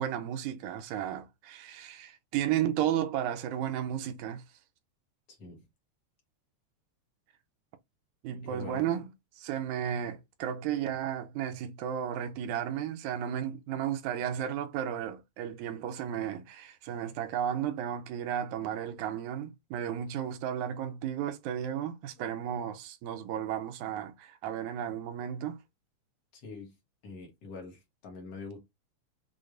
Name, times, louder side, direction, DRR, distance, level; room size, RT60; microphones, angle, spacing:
voice 1, 0.0-4.4 8.2-9.1 9.4-25.6, right 10 dB, 80° right, 1.9 m, -33 dB
voice 2, 5.3-5.6 8.4-8.9 26.3-26.7 27.0-28.6, left 3 dB, 60° left, 1.9 m, -44 dB
6.3 x 2.2 x 2.5 m
omnidirectional pair, 3.4 m